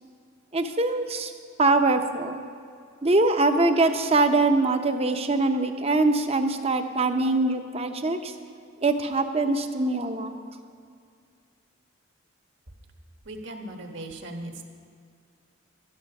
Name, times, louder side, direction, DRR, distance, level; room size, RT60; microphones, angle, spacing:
voice 1, 0.5-1.3 1.6-2.4 3.0-8.3 8.8-10.4, right 2 dB, 30° right, 7 dB, 0.7 m, -23 dB
voice 2, 13.2-14.7, right 1 dB, 60° right, 3 dB, 1.4 m, -38 dB
12.5 x 10.5 x 6.0 m, 2.3 s
head